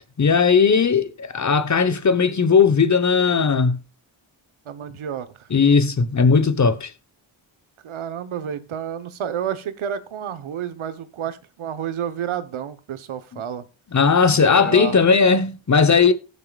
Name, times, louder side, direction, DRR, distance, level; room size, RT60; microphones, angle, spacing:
voice 1, 0.2-3.8 5.5-6.9 13.9-16.1, left 5 dB, 35° left, 1.1 m, -17 dB
voice 2, 4.7-5.5 7.8-13.6 14.5-15.0, right 8 dB, 80° right, 1.1 m, -30 dB
17.5 x 6.7 x 2.4 m
cardioid pair, 75°, 49 cm